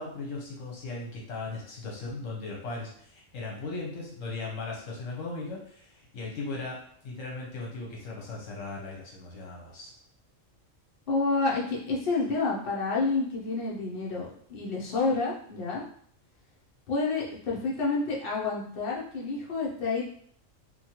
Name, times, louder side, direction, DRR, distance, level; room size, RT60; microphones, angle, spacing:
voice 1, 0.0-9.9, left 3 dB, 75° left, -2 dB, 1.2 m, -38 dB
voice 2, 11.1-15.8 16.9-20.0, left 3 dB, 55° left, -4 dB, 0.8 m, -29 dB
3.0 x 2.2 x 2.8 m, 0.62 s
omnidirectional pair, 1.3 m